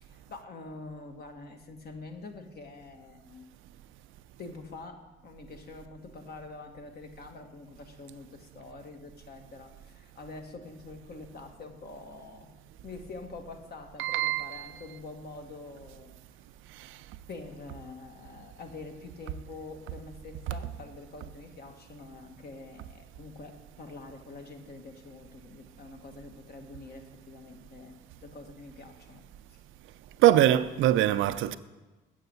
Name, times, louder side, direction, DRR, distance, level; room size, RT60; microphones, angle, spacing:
voice 1, 0.0-3.5 4.4-12.5 12.8-16.1 17.3-29.2 29.5-29.6, left 3 dB, 55° left, 1.4 m, -46 dB
voice 2, 14.0-14.7 30.2-31.6, right 13 dB, 85° right, 0.5 m, -23 dB
7.9 x 6.4 x 8.1 m
cardioid pair, 90°, 20 cm